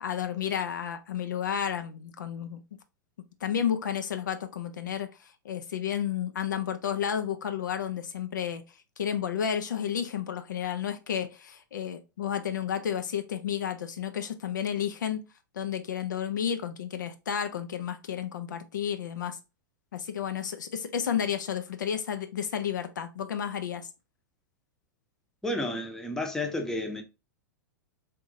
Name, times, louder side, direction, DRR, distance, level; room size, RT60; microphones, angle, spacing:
voice 1, 0.0-2.6 3.4-8.6 9.0-15.2 15.5-19.4 19.9-23.9, left 8 dB, 70° left, 0.4 m, -31 dB
voice 2, 25.4-27.0, left 1 dB, 5° left, 0.7 m, -31 dB
3.6 x 2.7 x 2.6 m
figure-of-eight pair, 100°, 10 cm